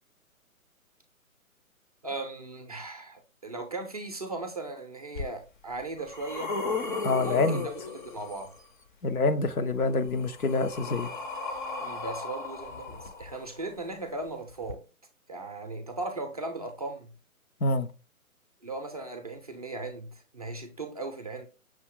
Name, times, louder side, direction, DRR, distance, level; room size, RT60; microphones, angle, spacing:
voice 1, 2.0-6.6 7.2-8.5 11.8-14.8 15.3-17.1 18.6-21.5, right 2 dB, 30° right, 0.4 m, -37 dB
sound 1, 5.2-5.3 5.8-8.6 9.8-13.7 14.6-14.7, left 3 dB, 35° left, 0.5 m, -35 dB
voice 2, 7.0-7.6 9.0-11.1 17.6-17.9, left 3 dB, 85° left, 0.7 m, -26 dB
6.1 x 2.3 x 3.5 m
figure-of-eight pair, 140°, 43 cm